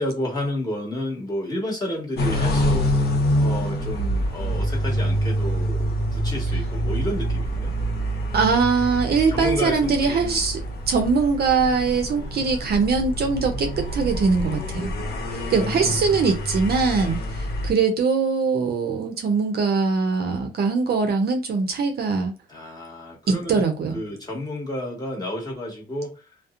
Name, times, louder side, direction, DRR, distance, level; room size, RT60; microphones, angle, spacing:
voice 1, 0.0-2.9 3.4-7.7 9.3-10.4 14.8-15.9 16.9-17.2 20.2-20.4 22.5-23.6 23.9-26.1, left 1 dB, 20° left, -2 dB, 1.2 m, -31 dB
sound 1, 2.2-17.7, equal, 50° left, 0.8 m, -26 dB
voice 2, 8.3-10.6 10.9-14.9 15.3-22.3 23.3-24.0, right 4 dB, 50° right, 5 dB, 0.6 m, -22 dB
2.7 x 2.0 x 2.4 m, 0.30 s
cardioid pair, 90°, 20 cm